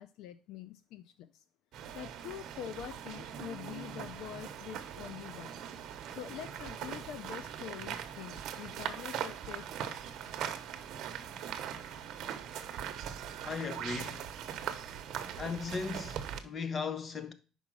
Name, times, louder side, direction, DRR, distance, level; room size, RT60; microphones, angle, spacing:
voice 1, 0.0-1.4 1.9-5.6 6.1-10.0, left 11 dB, 70° left, 0.4 m, -45 dB
sound 1, 1.7-16.4, right 9 dB, 60° right, 0.9 m, -41 dB
voice 2, 13.4-14.3 15.4-17.3, left 5 dB, 30° left, 0.8 m, -37 dB
5.4 x 4.9 x 6.1 m
cardioid pair, 145°, 0 cm